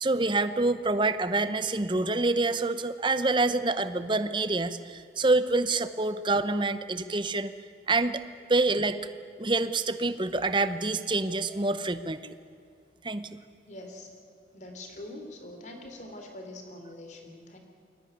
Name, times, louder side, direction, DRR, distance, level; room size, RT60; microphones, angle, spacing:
voice 1, 0.0-7.5 7.9-8.2 8.5-9.0 9.4-12.3 13.0-13.3, right 2 dB, 25° right, 12 dB, 0.9 m, -26 dB
voice 2, 13.6-14.1 14.5-17.6, left 1 dB, 40° left, 4 dB, 3.3 m, -44 dB
23.0 x 18.0 x 9.4 m, 2.4 s
head